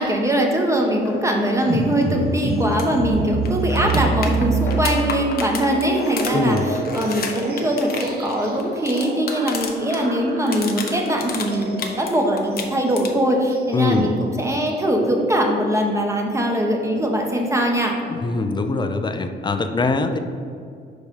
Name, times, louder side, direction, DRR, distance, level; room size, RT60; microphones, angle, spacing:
voice 1, 0.0-17.9, equal, 15° right, 1 dB, 1.0 m, -21 dB
sound 1, 1.0-8.8, left 3 dB, 70° left, 1.2 m, -40 dB
sound 2, 1.6-14.9, right 3 dB, 50° right, 1.1 m, -28 dB
sound 3, 2.7-2.9 3.1-3.2 3.5-10.0 10.3-12.1 12.4-13.3 15.4-15.5, left 5 dB, 50° left, 0.9 m, -31 dB
voice 2, 6.3-6.7 13.7-14.1 18.1-20.2, left 3 dB, 20° left, 7 dB, 0.5 m, -22 dB
5.2 x 4.8 x 5.3 m, 2.3 s
cardioid pair, 90°, 20 cm